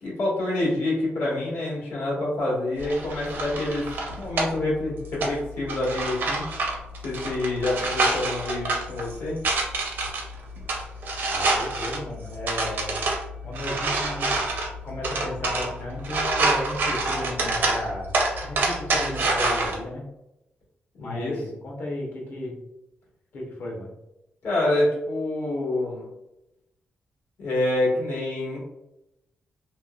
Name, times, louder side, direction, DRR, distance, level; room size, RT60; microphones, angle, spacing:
voice 1, 0.0-6.4 7.0-9.4 21.0-21.3 24.4-26.1 27.4-28.6, left 1 dB, 80° left, -6 dB, 1.3 m, -27 dB
sound 1, 2.8-19.8, right 2 dB, 60° right, 0.6 m, -27 dB
voice 2, 11.3-12.9 13.4-14.4 14.8-20.0 21.0-22.6 23.3-23.9, left 1 dB, 60° left, -2 dB, 0.7 m, -34 dB
2.9 x 2.1 x 2.3 m, 0.90 s
wide cardioid pair, 175°, 4 cm